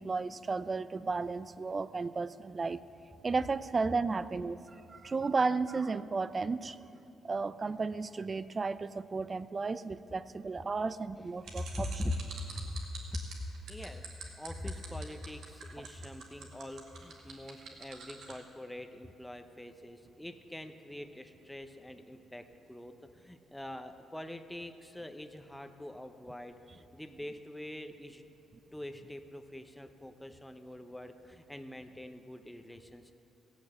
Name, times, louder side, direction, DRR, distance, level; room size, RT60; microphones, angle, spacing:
voice 1, 0.0-2.8 3.2-4.6 4.9-6.8 7.2-11.9, right 4 dB, 30° right, 15 dB, 0.4 m, -33 dB
sound 1, 11.4-18.4, right 6 dB, 70° right, 2.1 m, -46 dB
voice 2, 11.6-12.8 13.1-14.1 14.4-28.2 28.7-33.1, left 1 dB, 5° left, 7 dB, 0.8 m, -43 dB
15.5 x 8.5 x 8.0 m, 2.8 s
cardioid pair, 90°, 0 cm